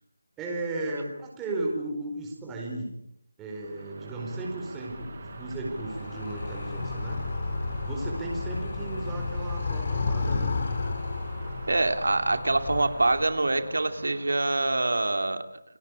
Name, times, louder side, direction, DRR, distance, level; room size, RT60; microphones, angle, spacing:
voice 1, 0.4-2.9 3.4-7.2 7.8-10.5, right 2 dB, 10° right, -2 dB, 4.5 m, -35 dB
sound 1, 3.4-15.0, right 3 dB, 40° right, 7.0 m, -43 dB
Animal, 4.9-13.5, left 4 dB, 45° left, 3.7 m, -33 dB
voice 2, 11.7-15.4, right 2 dB, 85° right, 8 dB, 2.7 m, -25 dB
29.5 x 19.5 x 8.4 m, 0.76 s
figure-of-eight pair, 170°, 0 cm